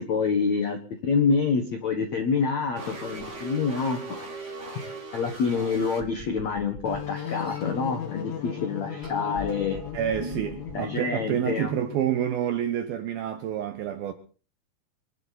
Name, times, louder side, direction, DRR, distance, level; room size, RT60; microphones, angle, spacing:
voice 1, 0.0-4.0 4.3-4.5 5.1-9.8 10.7-11.7, left 5 dB, 90° left, 1.5 m, -27 dB
sound 1, 2.7-6.0, right 3 dB, 45° right, 0.9 m, -39 dB
sound 2, 3.8-3.9 5.3-5.4 5.7-7.7 8.5-11.1, equal, 5° right, 3.1 m, -42 dB
sound 3, 6.9-12.4, left 9 dB, 75° left, 4.1 m, -37 dB
voice 2, 9.9-14.1, right 10 dB, 85° right, 2.1 m, -28 dB
25.0 x 12.0 x 4.2 m
omnidirectional pair, 5.8 m